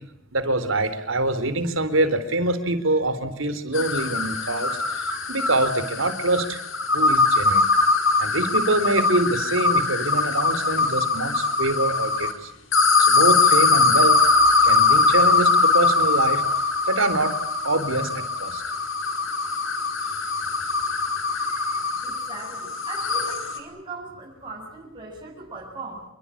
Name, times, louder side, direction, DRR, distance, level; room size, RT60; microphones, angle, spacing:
voice 1, 0.3-6.6 6.9-7.6 8.2-12.5 13.0-14.2 14.6-16.4 16.9-17.3 17.6-18.6, right 2 dB, 75° right, 11 dB, 3.9 m, -25 dB
sound 1, 3.7-12.3 12.7-23.6, left 3 dB, 70° left, 4.6 m, -21 dB
voice 2, 22.0-26.1, right 3 dB, 25° right, -3 dB, 7.8 m, -39 dB
28.5 x 23.5 x 8.6 m, 0.82 s
head